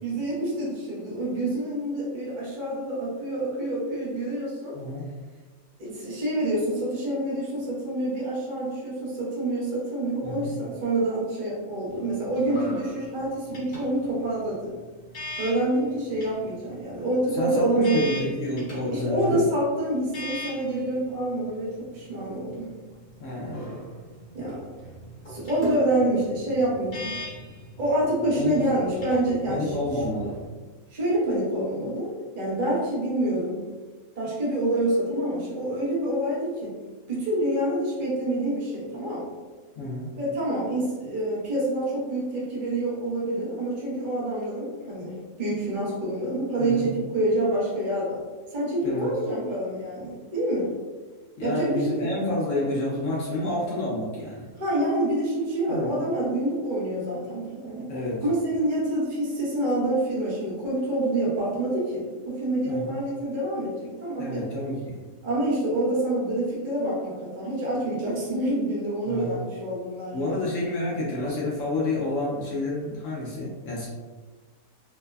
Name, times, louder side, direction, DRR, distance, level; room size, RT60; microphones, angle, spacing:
voice 1, 0.0-4.8 5.8-14.7 15.4-18.1 18.9-22.7 24.3-24.6 25.3-27.2 27.8-29.7 30.9-33.6 34.2-36.7 37.1-39.3 40.2-48.2 48.5-50.7 51.4-52.1 54.6-57.9 58.2-64.4 65.2-70.5, right 1 dB, 40° right, -7 dB, 0.8 m, -27 dB
voice 2, 4.7-5.0 10.2-10.5 17.4-19.4 23.2-23.9 28.4-28.6 29.5-30.3 39.8-40.1 46.6-46.9 48.8-49.1 51.4-54.5 55.7-55.9 57.9-58.2 62.7-62.9 64.2-65.0 69.1-69.4 70.1-73.9, left 2 dB, 65° left, -5 dB, 0.9 m, -29 dB
sound 1, 11.9-30.4, left 1 dB, 40° left, 1.1 m, -41 dB
3.2 x 2.0 x 2.2 m, 1.3 s
omnidirectional pair, 1.6 m